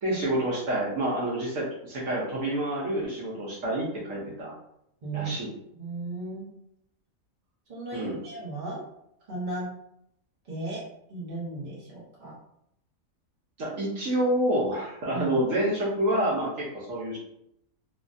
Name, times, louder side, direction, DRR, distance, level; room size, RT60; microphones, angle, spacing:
voice 1, 0.0-4.5 5.1-5.5 7.9-8.2 13.6-17.2, right 1 dB, 70° right, -5 dB, 1.1 m, -28 dB
voice 2, 5.0-5.3 5.8-6.5 7.7-8.8 9.3-9.7 10.5-10.8 11.1-12.3 15.1-15.4, right 3 dB, 35° right, -6 dB, 1.1 m, -35 dB
3.2 x 2.4 x 2.5 m, 0.76 s
omnidirectional pair, 1.4 m